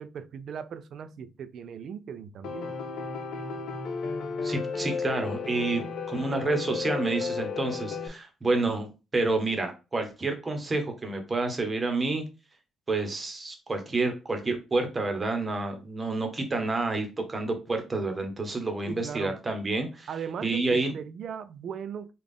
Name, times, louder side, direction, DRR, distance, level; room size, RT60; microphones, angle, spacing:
voice 1, 0.0-2.7 18.9-19.4 20.1-22.1, right 7 dB, 65° right, 0.3 m, -38 dB
Piano, 2.4-8.1, left 5 dB, 75° left, 0.6 m, -33 dB
voice 2, 4.4-12.2 12.9-20.1 20.4-20.9, right 3 dB, 25° right, 1.0 m, -29 dB
3.6 x 2.4 x 3.5 m
cardioid pair, 90°, 0 cm